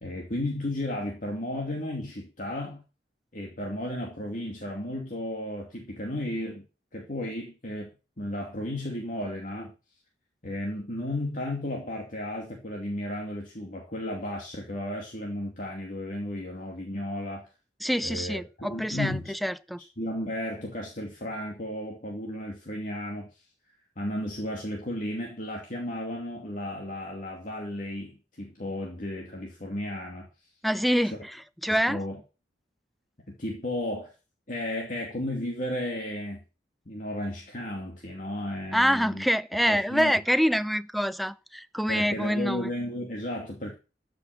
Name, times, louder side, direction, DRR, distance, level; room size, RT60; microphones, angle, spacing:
voice 1, 0.0-2.8 3.3-6.6 6.9-7.9 8.2-9.7 10.4-17.5 18.0-19.3 20.0-23.4 24.0-30.3 31.1-31.2 31.7-32.2 33.3-34.1 34.5-36.4 36.9-39.3 39.7-40.2 41.9-43.7, left 1 dB, 50° left, 2.5 m, -34 dB
voice 2, 17.8-19.8 30.6-32.0 38.7-42.7, equal, ahead, 0.5 m, -26 dB
14.0 x 6.2 x 6.5 m
head